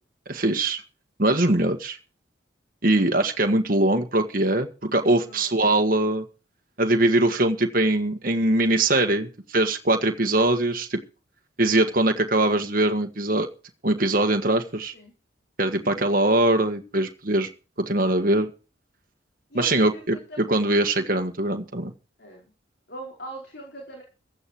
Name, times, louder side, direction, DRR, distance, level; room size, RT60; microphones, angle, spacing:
voice 1, 0.3-0.8 1.2-2.0 2.8-6.2 6.8-11.0 11.6-13.5 13.8-14.9 15.6-17.5 17.8-18.5 19.5-21.9, right 2 dB, 45° right, 5 dB, 1.6 m, -22 dB
voice 2, 5.1-5.6 14.9-15.1 19.5-20.4 22.2-22.5 22.9-24.0, right 1 dB, 55° left, 0 dB, 4.9 m, -41 dB
15.5 x 11.0 x 4.6 m, 0.34 s
head